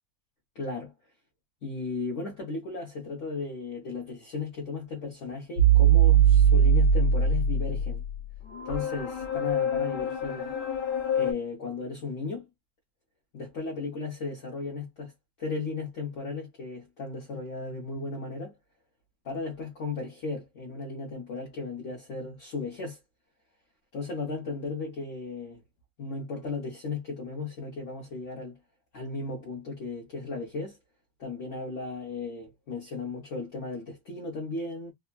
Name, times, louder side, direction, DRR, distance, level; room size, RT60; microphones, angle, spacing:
voice 1, 0.5-0.9 1.6-8.0 8.6-10.5 11.1-12.4 13.3-15.1 15.4-18.5 19.2-23.0 23.9-25.6 26.0-28.6 28.9-30.8 31.2-34.9, left 3 dB, 55° left, 1.2 m, -35 dB
sound 1, 5.6-11.3, right 5 dB, 80° left, 1.3 m, -22 dB
3.4 x 2.1 x 2.2 m
omnidirectional pair, 1.6 m